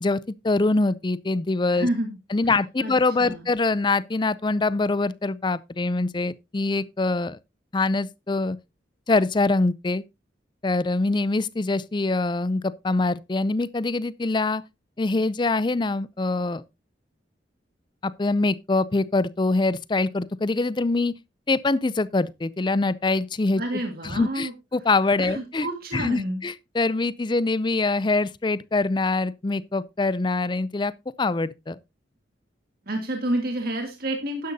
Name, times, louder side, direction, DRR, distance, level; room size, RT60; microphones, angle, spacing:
voice 1, 0.4-1.9 2.3-7.4 7.7-8.6 9.1-10.0 10.6-14.6 15.0-16.6 18.0-21.1 21.5-23.6 24.1-25.7 25.9-30.9 31.2-31.8, left 3 dB, 25° left, 0.4 m, -24 dB
voice 2, 1.7-2.2 2.5-3.4 23.6-24.5 25.2-26.4 32.9-34.5, right 1 dB, 50° right, 1.9 m, -29 dB
12.0 x 10.5 x 2.7 m
head